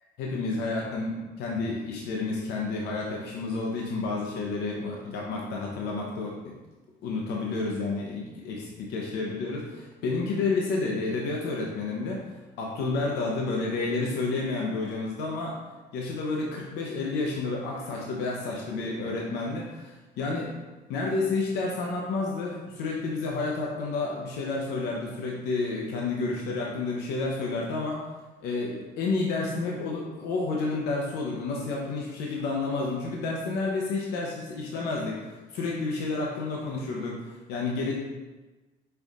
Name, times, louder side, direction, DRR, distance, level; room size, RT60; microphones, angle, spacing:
voice 1, 0.2-6.6 7.0-12.2 12.6-15.6 15.9-20.5 20.9-28.0 28.4-37.9, left 3 dB, 85° left, -2 dB, 0.8 m, -30 dB
5.6 x 3.9 x 2.4 m, 1.2 s
cardioid pair, 110°, 17 cm